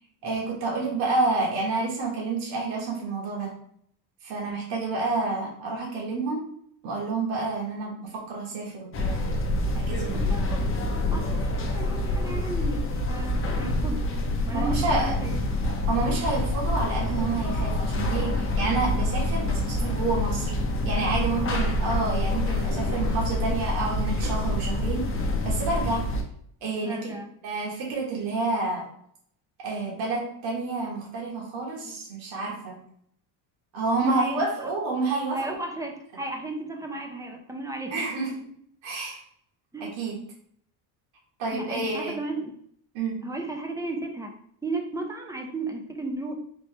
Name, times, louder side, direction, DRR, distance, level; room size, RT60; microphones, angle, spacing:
voice 1, 0.2-3.5 4.2-6.4 6.8-9.4 9.7-10.4 14.5-15.2 15.9-20.5 20.8-26.1 26.6-28.9 29.6-32.8 33.7-35.6 37.9-38.5 38.8-39.2 39.8-40.2 41.4-42.2 42.9-43.2, right 3 dB, 80° right, -3 dB, 1.6 m, -29 dB
sound 1, 8.9-26.2, left 1 dB, 30° left, 0.7 m, -27 dB
voice 2, 10.1-10.6 11.1-14.0 14.5-15.4 21.0-21.5 23.1-23.3 26.8-27.3 31.8-32.0 34.0-34.7 35.3-38.1 39.7-39.9 41.5-42.5 43.2-44.3 44.6-46.4, right 2 dB, 10° right, 3 dB, 0.4 m, -34 dB
4.3 x 2.8 x 3.2 m, 0.65 s
cardioid pair, 125°, 45 cm